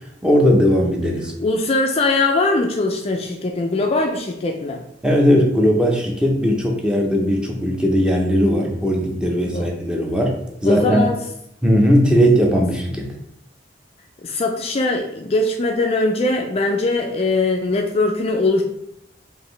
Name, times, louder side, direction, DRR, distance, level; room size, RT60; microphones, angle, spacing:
voice 1, 0.2-1.3 5.0-10.4 10.6-11.1 11.6-13.1, equal, 5° right, 0 dB, 0.6 m, -18 dB
voice 2, 1.4-4.8 9.5-9.7 10.6-11.2 14.2-18.6, left 2 dB, 35° left, 3 dB, 0.3 m, -21 dB
4.8 x 2.6 x 3.1 m, 0.79 s
head